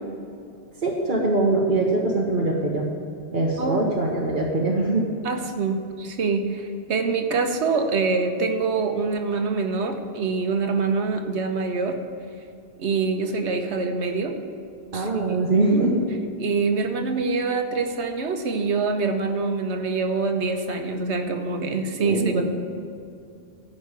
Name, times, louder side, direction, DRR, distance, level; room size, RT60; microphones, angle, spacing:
voice 1, 0.8-2.9 3.3-5.1 14.9-16.0 22.0-22.4, right 2 dB, 45° right, -2 dB, 1.3 m, -22 dB
voice 2, 3.6-3.9 5.2-12.0 12.8-14.4 14.9-15.1 15.7-15.8 16.4-22.4, right 4 dB, 70° right, 5 dB, 1.3 m, -25 dB
14.0 x 5.6 x 8.1 m, 2.5 s
omnidirectional pair, 1.2 m